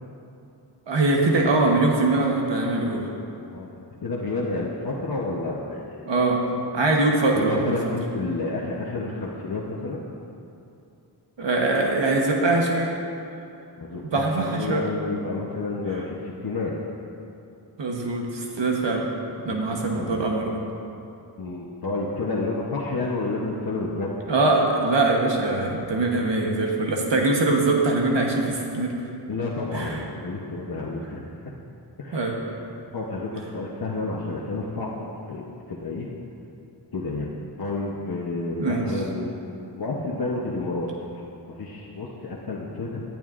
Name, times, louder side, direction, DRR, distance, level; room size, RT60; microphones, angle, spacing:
voice 1, 0.9-3.1 6.0-6.4 6.7-7.7 11.4-12.9 14.1-14.8 17.8-19.1 19.4-20.6 24.3-29.0 29.7-30.0 32.1-32.4 38.6-38.9, right 2 dB, 80° right, 0 dB, 1.2 m, -22 dB
voice 2, 3.5-6.1 7.3-10.0 13.8-16.7 19.5-20.2 21.4-24.1 29.3-31.5 32.0-32.3 32.9-36.1 36.9-37.3 37.6-41.2 41.5-43.0, left 3 dB, 55° left, -4 dB, 1.0 m, -30 dB
16.5 x 10.5 x 2.5 m, 2.7 s
wide cardioid pair, 95°, 43 cm